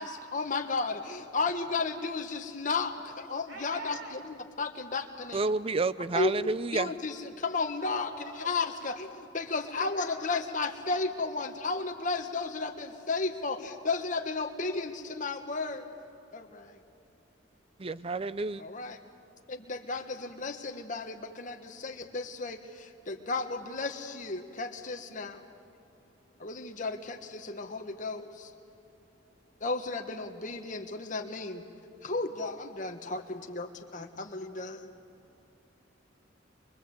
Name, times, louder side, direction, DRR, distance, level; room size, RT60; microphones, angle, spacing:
voice 1, 0.0-5.4 6.1-15.9 16.3-16.8 18.6-19.0 19.5-25.4 26.4-28.5 29.6-31.6 32.0-34.9, left 3 dB, 40° left, 1.5 m, -34 dB
voice 2, 3.5-4.2 7.9-8.5 9.7-10.2 26.3-26.4 28.9-29.4 35.2-35.6, right 3 dB, 85° right, 4.1 m, -47 dB
voice 3, 5.3-6.9 17.8-18.6, right 3 dB, 30° right, 0.5 m, -30 dB
23.5 x 23.0 x 8.1 m
head